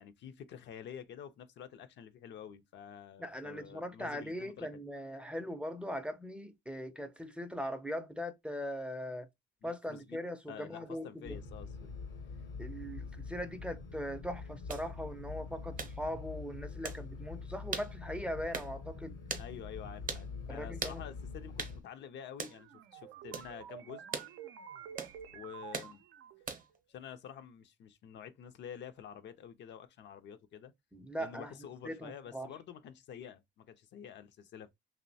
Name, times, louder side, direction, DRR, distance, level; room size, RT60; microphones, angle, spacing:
voice 1, 0.0-4.8 9.6-11.9 19.4-24.1 25.3-26.0 26.9-30.7 31.2-34.7, left 8 dB, 65° left, 0.4 m, -49 dB
voice 2, 3.2-9.3 9.6-11.4 12.6-19.2 20.5-21.0 30.9-31.5 31.8-32.5, equal, 5° right, 0.4 m, -40 dB
sound 1, 11.2-21.8, left 4 dB, 80° left, 0.8 m, -45 dB
sound 2, 14.7-14.9 15.8-16.0 16.8-17.0 17.7-17.9 18.5-18.7 19.3-19.5 20.1-20.3 20.8-21.0 21.6-21.8 22.4-22.6 23.3-23.5 24.1-24.3 25.0-25.2 25.7-25.9 26.5-26.8, right 5 dB, 45° right, 0.7 m, -39 dB
sound 3, 22.5-26.6, right 9 dB, 85° right, 0.4 m, -50 dB
2.8 x 2.0 x 2.6 m
cardioid pair, 90°, 20 cm